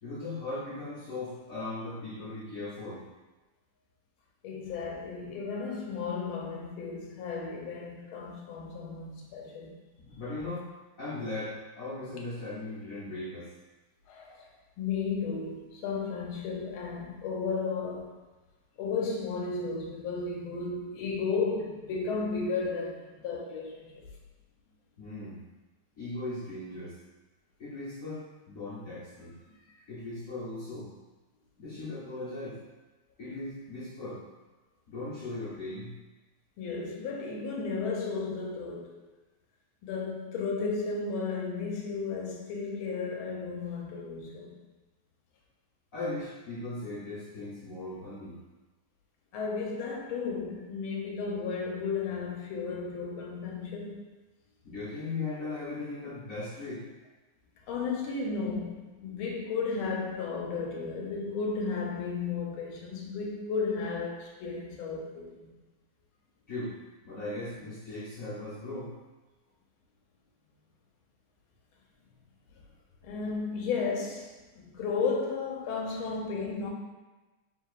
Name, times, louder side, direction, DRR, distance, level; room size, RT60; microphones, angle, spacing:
voice 1, 0.0-3.0 10.1-10.7 11.0-13.5 25.0-25.4 26.0-27.0 27.6-30.9 31.6-32.6 33.2-34.2 34.9-36.0 45.9-48.4 54.6-56.8 66.5-66.8 67.0-68.9, left 2 dB, 60° left, 0.9 m, -38 dB
voice 2, 4.4-9.7 14.1-14.4 14.8-18.1 18.8-24.0 36.6-38.9 39.8-44.6 49.3-54.0 57.7-65.5 73.0-76.7, left 4 dB, 80° left, 1.5 m, -34 dB
4.6 x 3.5 x 2.4 m
omnidirectional pair, 2.3 m